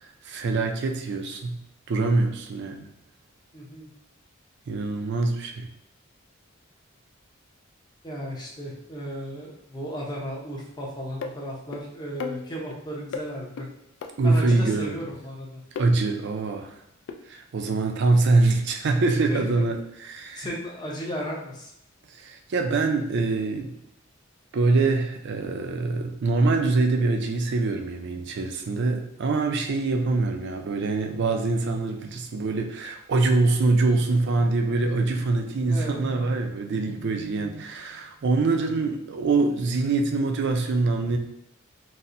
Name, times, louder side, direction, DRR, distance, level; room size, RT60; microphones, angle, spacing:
voice 1, 0.0-1.6 1.9-2.9 4.7-5.7 14.2-15.0 15.8-16.8 17.3-20.5 22.1-23.7 24.5-41.2, right 3 dB, 55° right, 4 dB, 0.4 m, -24 dB
voice 2, 3.5-3.9 8.0-13.7 14.2-15.6 19.3-19.6 20.4-21.7 35.7-36.1, equal, 20° left, -3 dB, 0.6 m, -35 dB
sound 1, 11.2-11.3 11.7-11.8 12.2-12.8 13.1-13.3 13.6-13.7 14.0-14.1 14.5-14.6 15.8-15.9 17.1-17.2, left 5 dB, 60° left, 0.3 m, -33 dB
4.1 x 2.1 x 2.5 m, 0.80 s
head